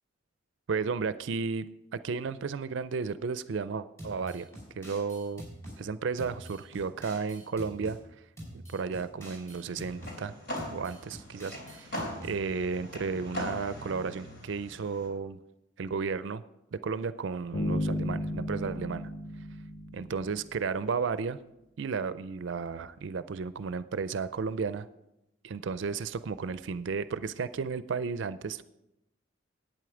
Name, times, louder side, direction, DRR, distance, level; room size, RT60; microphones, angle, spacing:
voice 1, 0.7-4.5 4.8-5.4 5.8-8.0 8.5-10.3 10.7-11.9 12.2-15.4 15.8-16.4 16.7-19.1 19.9-21.4 21.8-24.9 25.4-28.6, right 5 dB, 65° right, 14 dB, 0.4 m, -33 dB
sound 1, 4.0-5.8 6.2-8.0 8.4-10.2 10.6-12.4, equal, 15° left, 4.8 m, -45 dB
sound 2, 9.6-15.1, left 1 dB, 50° left, 3.3 m, -41 dB
sound 3, 17.5-20.6, left 1 dB, 90° left, 3.8 m, -34 dB
11.0 x 9.0 x 4.9 m, 0.87 s
head